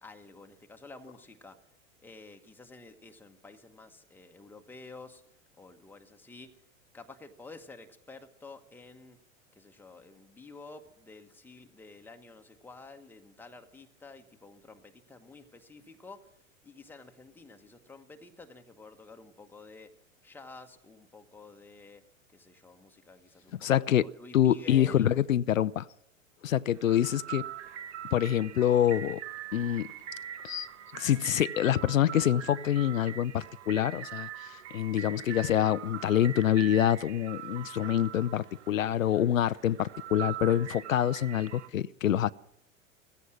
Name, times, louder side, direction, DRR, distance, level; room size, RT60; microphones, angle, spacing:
voice 1, 0.0-1.6 2.0-5.2 5.6-6.5 6.9-9.2 9.5-16.3 16.6-19.9 20.2-22.0 22.3-23.7 24.0-25.1, left 3 dB, 5° left, 5 dB, 1.2 m, -50 dB
voice 2, 23.6-24.1 24.3-25.9 26.4-27.4 28.1-29.2 29.5-29.9 30.4-30.7 30.9-42.3, left 11 dB, 80° left, 17 dB, 0.5 m, -26 dB
sound 1, 26.7-41.7, right 10 dB, 60° right, 1.0 m, -43 dB
15.0 x 15.0 x 6.3 m, 0.78 s
figure-of-eight pair, 90°, 40 cm